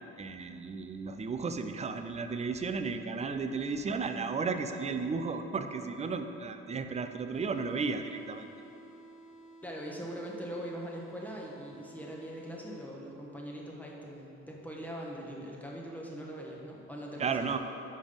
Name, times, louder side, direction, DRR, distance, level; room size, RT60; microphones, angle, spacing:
voice 1, 0.2-8.5 17.2-17.6, right 4 dB, 25° right, 8 dB, 0.4 m, -34 dB
sound 1, 7.3-13.3, right 2 dB, 60° left, 1.2 m, -53 dB
voice 2, 9.6-17.6, equal, 5° left, -2 dB, 1.0 m, -42 dB
5.4 x 5.1 x 5.1 m, 3.0 s
cardioid pair, 90°, 30 cm